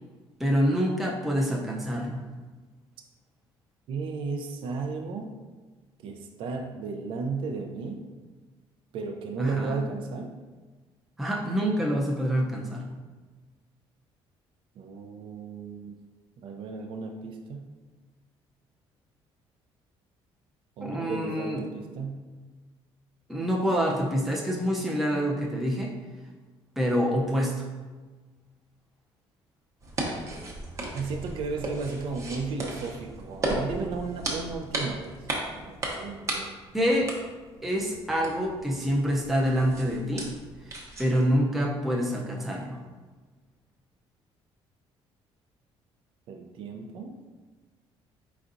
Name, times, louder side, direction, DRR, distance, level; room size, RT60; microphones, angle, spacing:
voice 1, 0.4-2.2 9.4-9.8 11.2-12.8 20.8-21.6 23.3-25.9 26.8-27.7 36.7-37.1 37.6-40.3 41.0-42.8, equal, ahead, -2 dB, 0.5 m, -26 dB
voice 2, 3.9-5.3 6.0-8.0 8.9-10.3 14.8-16.0 16.4-17.7 20.8-22.2 30.9-35.3 35.6-36.6 46.3-47.2, right 4 dB, 60° right, 3 dB, 0.4 m, -34 dB
sound 1, 29.8-41.4, right 2 dB, 30° right, 0.8 m, -36 dB
4.4 x 4.0 x 2.5 m, 1.3 s
cardioid pair, 145°, 10 cm